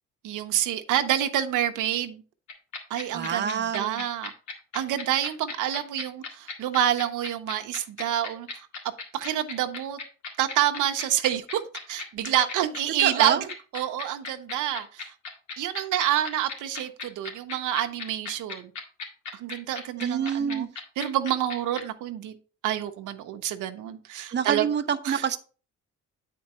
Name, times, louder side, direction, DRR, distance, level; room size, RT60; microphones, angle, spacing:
voice 1, 0.2-2.2 2.9-4.3 4.7-8.7 9.1-10.0 10.4-11.6 11.9-13.5 13.7-15.1 15.6-18.7 19.3-20.7 21.0-22.3 22.6-24.7 25.0-25.2, right 11 dB, 80° right, 0.8 m, -27 dB
sound 1, 2.5-21.8, left 4 dB, 70° left, 2.1 m, -36 dB
voice 2, 3.1-4.0 13.0-13.4 20.0-20.7 24.3-25.4, right 7 dB, 35° right, 0.7 m, -27 dB
8.5 x 4.5 x 4.2 m
cardioid pair, 90°, 30 cm